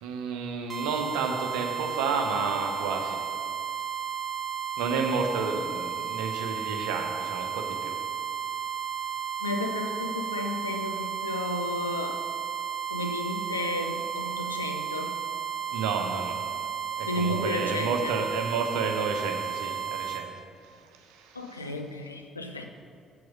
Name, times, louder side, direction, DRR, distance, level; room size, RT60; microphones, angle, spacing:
voice 1, 0.0-3.3 4.8-8.0 15.7-16.4 17.0-20.3 20.6-21.6, right 4 dB, 70° right, 4 dB, 0.9 m, -31 dB
sound 1, 0.7-20.2, right 8 dB, 30° right, 1.0 m, -33 dB
voice 2, 9.4-12.2 12.9-15.2 17.1-18.2 21.3-22.7, left 2 dB, 85° left, 4 dB, 0.5 m, -33 dB
8.1 x 7.8 x 5.3 m, 2.3 s
figure-of-eight pair, 45°, 0 cm